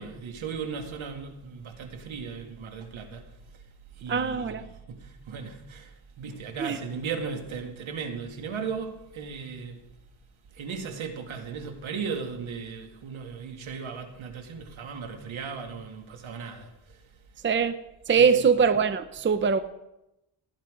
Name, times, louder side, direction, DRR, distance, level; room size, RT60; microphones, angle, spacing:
voice 1, 0.0-3.3 3.5-3.6 4.0-9.8 10.5-17.0 18.2-18.5, right 5 dB, 70° right, 2.2 m, -37 dB
voice 2, 4.1-4.6 6.6-6.8 17.4-17.7 18.1-19.6, right 6 dB, 25° right, 0.6 m, -22 dB
17.5 x 10.5 x 5.1 m
cardioid pair, 120°, 48 cm